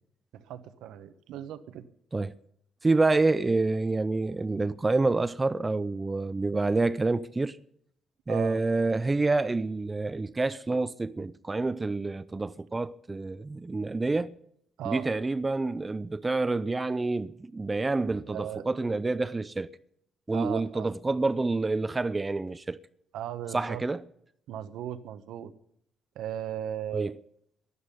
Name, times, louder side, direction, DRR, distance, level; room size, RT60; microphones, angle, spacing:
voice 1, 0.3-1.8 8.3-8.6 14.8-15.1 18.2-18.6 20.3-20.9 23.1-23.8 24.5-25.5 26.1-27.1, right 10 dB, 85° right, 1.1 m, -37 dB
voice 2, 2.8-7.6 8.3-14.4 14.8-19.7 20.3-22.8 23.5-24.0 26.9-27.1, right 3 dB, 20° right, 0.6 m, -28 dB
12.5 x 11.0 x 10.0 m
cardioid pair, 90°, 0 cm